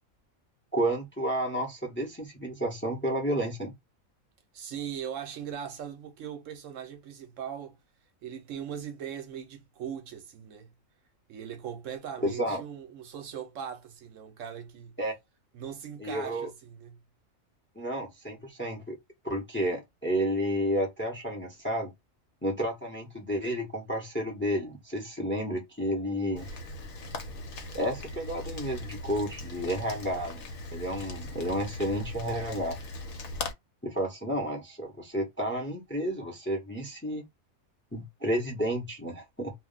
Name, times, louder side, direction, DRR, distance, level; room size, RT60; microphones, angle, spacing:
voice 1, 0.7-3.7 12.2-12.6 15.0-15.1 16.0-16.5 17.8-19.0 19.2-21.9 22.4-26.5 27.7-30.5 30.7-32.8 33.8-37.2 37.9-39.5, equal, 10° left, 0.6 m, -31 dB
voice 2, 4.5-7.8 8.2-10.7 11.3-15.0 15.5-17.0, right 8 dB, 70° right, 0.9 m, -39 dB
Rain, 26.4-33.5, left 2 dB, 70° left, 1.1 m, -39 dB
2.4 x 2.1 x 3.7 m
omnidirectional pair, 1.5 m